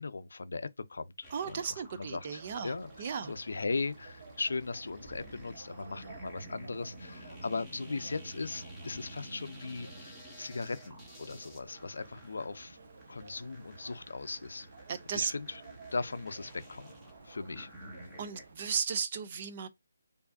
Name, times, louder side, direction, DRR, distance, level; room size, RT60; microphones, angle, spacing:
voice 1, 0.0-1.6 1.9-2.9 3.3-12.8 13.1-14.7 15.1-15.6 15.9-16.9 17.2-17.7, left 3 dB, 65° left, 0.5 m, -38 dB
sound 1, 1.2-18.7, equal, 5° right, 0.7 m, -51 dB
voice 2, 1.3-3.3 14.9-15.3 18.2-19.7, right 6 dB, 25° right, 0.3 m, -35 dB
sound 2, 2.4-18.5, right 3 dB, 40° right, 0.8 m, -53 dB
4.7 x 2.6 x 2.5 m
hypercardioid pair, 175°, 0 cm